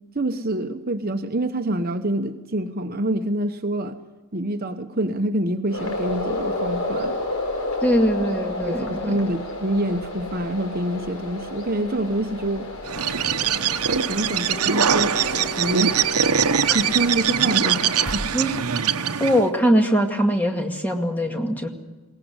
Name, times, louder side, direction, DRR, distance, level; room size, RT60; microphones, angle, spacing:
voice 1, 0.1-4.0 4.3-7.2 8.7-12.7 13.9-16.2 16.7-18.2, right 1 dB, 40° right, 7 dB, 1.0 m, -26 dB
sound 1, 5.7-18.1, left 1 dB, 80° left, 4.5 m, -31 dB
voice 2, 7.8-9.2 18.3-18.5 19.2-21.7, equal, 10° left, 2 dB, 2.1 m, -21 dB
Bird, 12.9-19.5, right 8 dB, 85° right, 0.9 m, -22 dB
21.5 x 18.0 x 8.1 m, 1.2 s
head